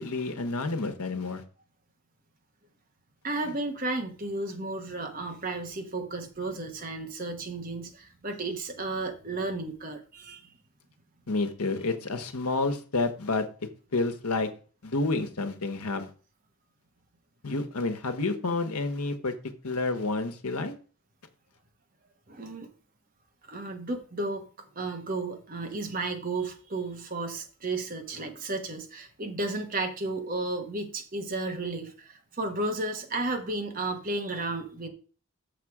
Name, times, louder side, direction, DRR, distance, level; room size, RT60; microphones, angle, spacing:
voice 1, 0.0-1.4 11.3-13.5 13.9-14.5 14.8-16.1 17.4-19.3 19.6-20.7, left 3 dB, 85° left, 8 dB, 1.2 m, -29 dB
voice 2, 3.2-10.5 22.3-22.7 23.5-34.9, right 2 dB, 40° right, 4 dB, 1.3 m, -33 dB
6.7 x 6.6 x 4.8 m, 0.38 s
head